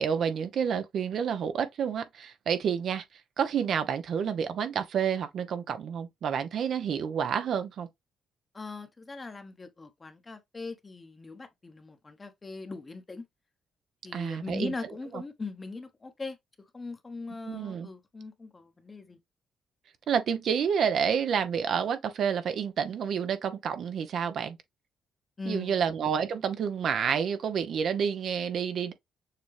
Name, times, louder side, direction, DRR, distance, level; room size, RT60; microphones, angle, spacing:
voice 1, 0.0-3.0 3.4-7.9 14.1-15.2 17.5-17.9 20.1-24.6 25.5-28.9, right 7 dB, 65° right, 0.8 m, -29 dB
voice 2, 8.5-13.2 14.0-16.4 16.7-19.2 25.4-25.9, left 3 dB, 25° left, 0.9 m, -40 dB
6.7 x 2.3 x 3.2 m
cardioid pair, 90°, 0 cm